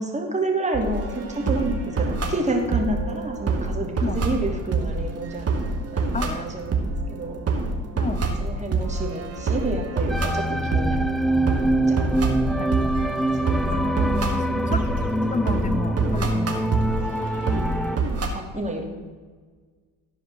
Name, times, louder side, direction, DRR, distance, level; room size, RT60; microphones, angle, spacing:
voice 1, 0.0-5.5 5.9-7.4 8.4-11.0 11.9-12.1 13.0-13.6 14.0-14.8 15.4-15.7 17.9-18.8, right 2 dB, 20° right, 1 dB, 2.7 m, -29 dB
sound 1, 0.7-18.3, right 3 dB, 35° right, 2.1 m, -27 dB
voice 2, 6.1-6.5 8.0-8.2 12.6-12.7 13.7-14.8 15.3-16.6, left 3 dB, 20° left, 12 dB, 1.0 m, -30 dB
sound 2, 10.1-18.0, right 1 dB, ahead, 0.5 m, -24 dB
13.5 x 5.1 x 6.3 m, 1.5 s
hypercardioid pair, 65°, 39 cm